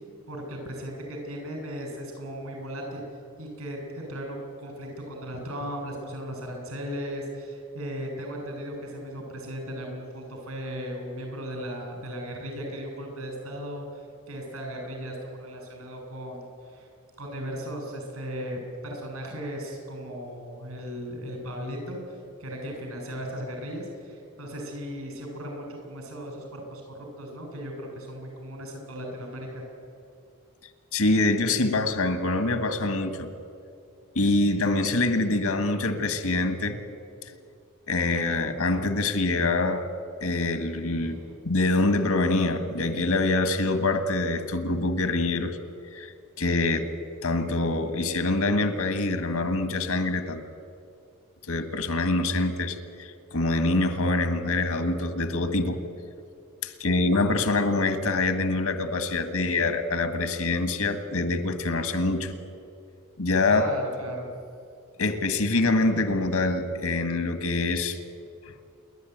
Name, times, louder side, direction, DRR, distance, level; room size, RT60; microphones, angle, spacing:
voice 1, 0.3-3.0 3.4-16.9 17.2-29.6 40.9-41.4 63.5-64.3, equal, 85° right, 2 dB, 7.1 m, -37 dB
voice 2, 30.9-33.3 34.2-36.8 37.9-39.9 40.2-41.2 41.4-45.6 45.9-46.9 47.2-50.4 51.5-55.8 56.6-62.3 63.2-63.7 65.0-68.0, left 2 dB, 85° left, 10 dB, 1.8 m, -25 dB
28.0 x 11.5 x 9.4 m, 2.5 s
head